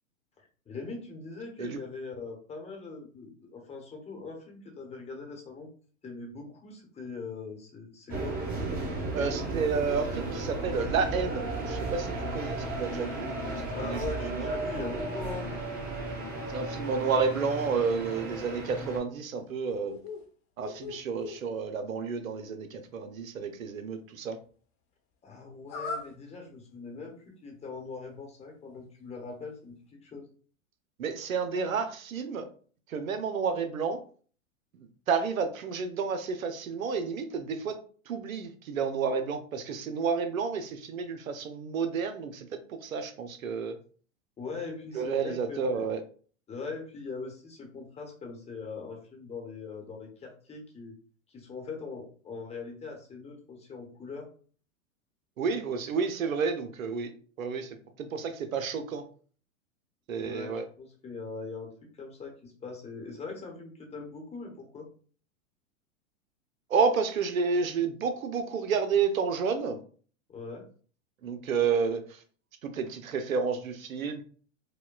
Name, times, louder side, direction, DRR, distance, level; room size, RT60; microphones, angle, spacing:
voice 1, 0.7-5.7 6.0-8.4 13.7-15.5 25.2-30.3 44.4-45.9 46.5-51.0 51.3-54.3 60.2-64.9 70.3-70.7, left 4 dB, 15° left, 2 dB, 0.9 m, -41 dB
sound 1, 8.1-19.0, right 2 dB, 20° right, 1.2 m, -34 dB
voice 2, 9.1-14.5 16.5-20.0 20.6-24.4 31.0-32.5 32.9-34.0 35.1-37.8 38.1-43.8 44.9-46.0 55.4-57.1 57.4-59.0 60.1-60.6 66.7-69.8 71.2-72.2 72.6-74.2, right 5 dB, 85° right, 8 dB, 0.7 m, -30 dB
sound 2, 19.3-20.3 20.6-21.4 25.7-26.1, left 4 dB, 45° left, 0.9 m, -39 dB
5.1 x 2.2 x 2.3 m, 0.42 s
hypercardioid pair, 110°, 40 cm